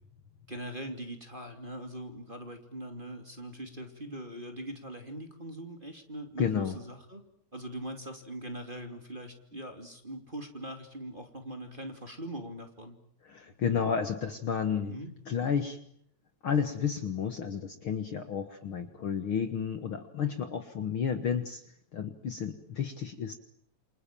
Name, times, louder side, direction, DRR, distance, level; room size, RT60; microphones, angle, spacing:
voice 1, 0.5-7.2 7.5-13.0 14.8-15.1, right 1 dB, 15° right, 4 dB, 2.8 m, -41 dB
voice 2, 6.4-6.8 13.3-15.0 15.3-15.8 16.4-21.6 21.9-23.4, left 7 dB, 50° left, 8 dB, 2.1 m, -31 dB
28.5 x 28.0 x 7.5 m, 0.67 s
omnidirectional pair, 3.4 m